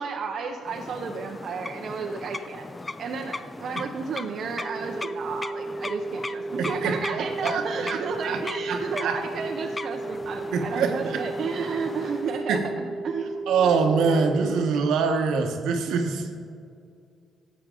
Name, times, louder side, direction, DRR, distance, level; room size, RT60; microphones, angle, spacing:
voice 1, 0.0-2.7 3.0-13.7, right 5 dB, 60° right, 2 dB, 0.6 m, -32 dB
sound 1, 0.6-12.5, left 3 dB, 20° left, 0.4 m, -38 dB
sound 2, 4.6-14.6, right 2 dB, 20° right, 0.7 m, -34 dB
voice 2, 6.6-8.4 8.7-9.2 10.5-11.2 12.5-12.6 13.5-16.4, right 5 dB, 85° right, 5 dB, 1.0 m, -25 dB
12.5 x 7.8 x 3.8 m, 2.3 s
cardioid pair, 90°, 0 cm